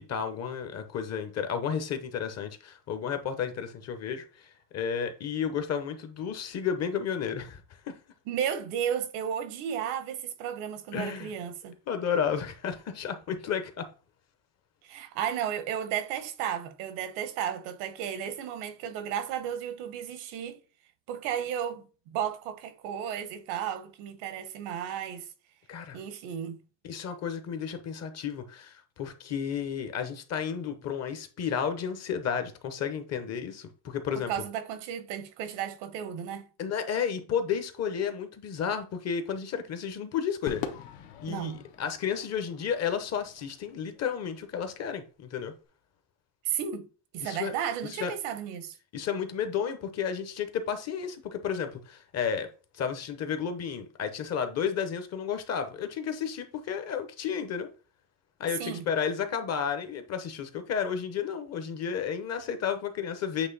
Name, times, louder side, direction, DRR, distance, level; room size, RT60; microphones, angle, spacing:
voice 1, 0.0-7.6 7.9-8.0 10.9-11.3 11.9-13.9 25.7-26.0 26.8-34.3 36.6-40.6 41.2-45.5 47.2-47.5 47.9-48.1 48.9-52.5 52.7-57.7 58.4-63.5, left 7 dB, 30° left, 0.9 m, -32 dB
voice 2, 8.3-11.7 14.8-20.6 21.1-25.3 25.9-26.6 34.1-36.5 41.3-41.6 46.4-48.8 58.6-58.8, right 9 dB, 80° right, 1.1 m, -34 dB
Crowd / Fireworks, 40.5-44.9, left 8 dB, 70° left, 1.3 m, -43 dB
8.2 x 3.1 x 4.0 m
cardioid pair, 160°, 49 cm